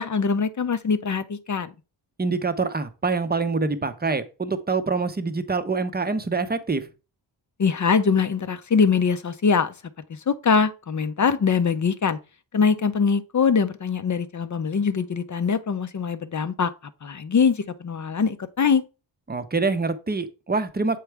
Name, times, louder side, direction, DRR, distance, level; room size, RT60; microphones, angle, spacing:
voice 1, 0.0-1.7 7.6-9.7 10.1-12.2 12.5-16.7 17.0-18.8, left 5 dB, 40° left, 0.5 m, -22 dB
voice 2, 2.2-6.9 19.3-21.0, right 4 dB, 20° right, 0.6 m, -25 dB
7.2 x 4.7 x 3.3 m
wide cardioid pair, 90°, 46 cm